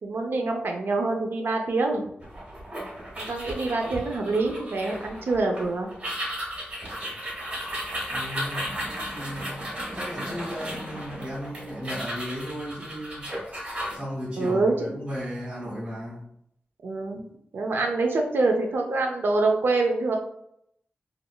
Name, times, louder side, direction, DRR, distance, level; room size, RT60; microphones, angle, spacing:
voice 1, 0.0-2.1 3.2-5.9 14.4-14.9 16.8-20.2, right 3 dB, 80° right, 3 dB, 0.5 m, -25 dB
sound 1, 2.2-14.0, equal, 45° right, 1.5 m, -35 dB
voice 2, 8.1-13.3 13.9-16.2, equal, 25° right, -9 dB, 1.4 m, -35 dB
3.4 x 2.4 x 2.2 m, 0.73 s
wide cardioid pair, 145°, 4 cm